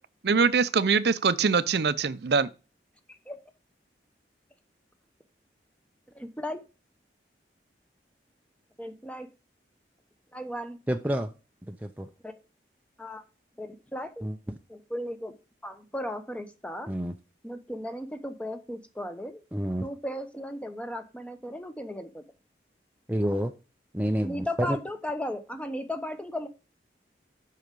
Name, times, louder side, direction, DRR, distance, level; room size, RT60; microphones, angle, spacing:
voice 1, 0.2-2.5, right 5 dB, 65° right, 0.6 m, -23 dB
voice 2, 6.1-6.6 8.8-9.3 10.3-10.8 12.2-12.3 13.0-13.2 13.6-14.3 14.7-15.3 15.6-16.9 17.4-19.4 19.8-22.2 24.2-26.5, left 1 dB, 5° left, 0.9 m, -36 dB
voice 3, 10.9-11.3 11.7-12.1 14.2-14.4 16.9-17.2 19.5-19.9 23.1-23.5 23.9-24.8, equal, 10° right, 0.5 m, -28 dB
8.0 x 5.7 x 5.2 m
head